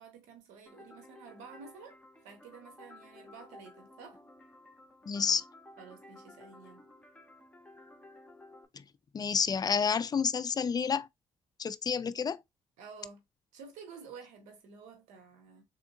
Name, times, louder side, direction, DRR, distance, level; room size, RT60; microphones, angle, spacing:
voice 1, 0.0-4.2 5.8-6.8 12.8-13.2 13.5-15.6, right 5 dB, 90° right, 1.3 m, -51 dB
sound 1, 0.7-8.7, left 2 dB, 10° left, 1.2 m, -55 dB
voice 2, 5.1-5.4 8.7-8.8 9.1-11.1 11.6-12.4, left 6 dB, 35° left, 0.4 m, -29 dB
3.6 x 3.5 x 2.7 m
supercardioid pair, 70°, 12 cm